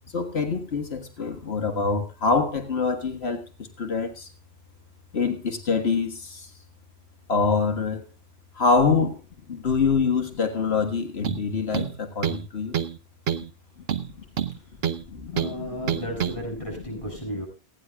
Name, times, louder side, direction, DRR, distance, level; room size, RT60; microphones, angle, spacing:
voice 1, 0.1-4.3 5.1-6.5 7.3-8.1 8.6-9.2 9.5-12.8 15.0-16.0 16.6-16.7 17.3-17.4, left 4 dB, 80° left, 5 dB, 1.9 m, -25 dB
sound 1, 11.2-11.5 11.7-12.5 12.7-13.0 13.3-13.5 13.9-15.0 15.4-15.5 15.9-16.4, right 9 dB, 75° right, 1.1 m, -27 dB
voice 2, 15.3-17.5, equal, 30° left, -1 dB, 7.5 m, -34 dB
29.0 x 9.9 x 2.3 m, 0.29 s
omnidirectional pair, 1.0 m